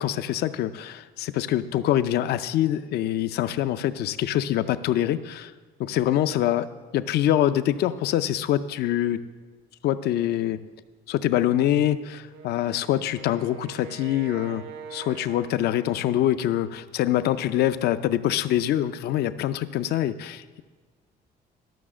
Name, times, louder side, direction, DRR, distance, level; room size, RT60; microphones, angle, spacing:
voice 1, 0.0-5.5 5.8-6.7 6.9-9.2 9.8-10.6 11.1-14.6 14.9-20.6, left 12 dB, 70° left, 13 dB, 0.5 m, -24 dB
Wind instrument woodwind instrument, 12.3-16.5, right 6 dB, 75° right, 1.0 m, -44 dB
12.5 x 6.3 x 6.2 m, 1.4 s
cardioid pair, 110°, 17 cm